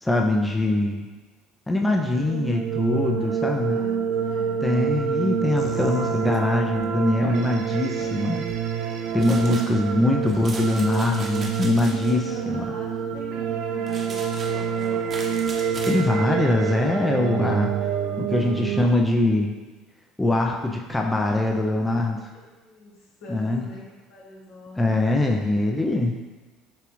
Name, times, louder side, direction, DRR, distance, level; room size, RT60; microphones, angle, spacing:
voice 1, 0.0-1.1 1.7-3.8 4.6-8.4 9.1-12.7 15.9-17.7 18.2-19.5 20.2-22.3 23.3-23.6 24.8-26.1, left 2 dB, 10° left, 1 dB, 0.4 m, -23 dB
sound 1, 2.0-18.8, right 7 dB, 65° right, 0.3 m, -27 dB
voice 2, 3.1-4.6 11.8-15.7 22.3-23.8 24.1-25.0 26.0-26.2, equal, 70° left, -4 dB, 1.3 m, -42 dB
sound 2, 5.6-6.9 8.0-8.5 9.1-9.5 10.3-10.6, left 4 dB, 45° left, 0.7 m, -45 dB
sound 3, 9.2-9.7 10.3-12.1 13.9-16.0, right 3 dB, 40° right, 0.8 m, -38 dB
6.7 x 2.4 x 3.1 m, 1.2 s
supercardioid pair, 85°, 0 cm